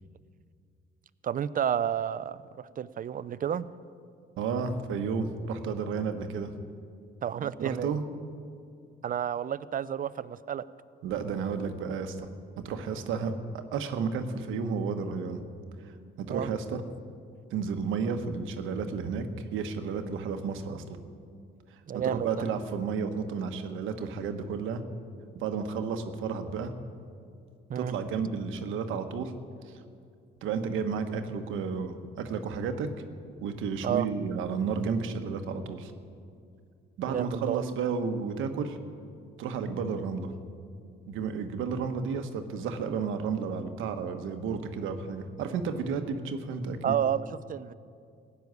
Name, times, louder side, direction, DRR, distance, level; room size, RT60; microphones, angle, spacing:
voice 1, 1.2-3.7 7.2-7.9 9.0-10.6 16.3-16.5 21.9-22.5 27.7-27.9 33.8-34.1 37.1-37.6 46.8-47.7, right 9 dB, 45° right, 17 dB, 0.5 m, -30 dB
voice 2, 4.4-6.5 7.4-8.0 11.0-12.3 12.6-15.4 15.8-16.8 17.5-21.0 21.9-24.8 25.3-26.7 27.7-29.3 30.4-32.9 33.4-35.9 37.0-38.8 39.4-40.3 41.1-47.0, right 5 dB, 85° right, 7 dB, 1.1 m, -32 dB
15.5 x 6.9 x 9.5 m, 2.3 s
cardioid pair, 90°, 20 cm